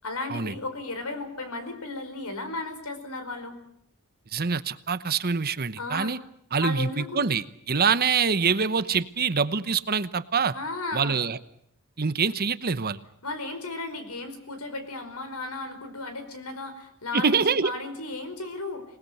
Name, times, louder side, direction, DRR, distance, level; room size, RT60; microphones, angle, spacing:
voice 1, 0.0-3.6 5.8-6.1 6.6-7.3 10.5-11.2 13.2-18.8, left 2 dB, 85° left, 8 dB, 5.0 m, -35 dB
voice 2, 4.3-6.2 6.5-10.5 10.9-11.4 12.0-13.0 17.1-17.7, right 5 dB, 45° right, 14 dB, 1.0 m, -25 dB
26.5 x 19.5 x 8.0 m, 0.69 s
head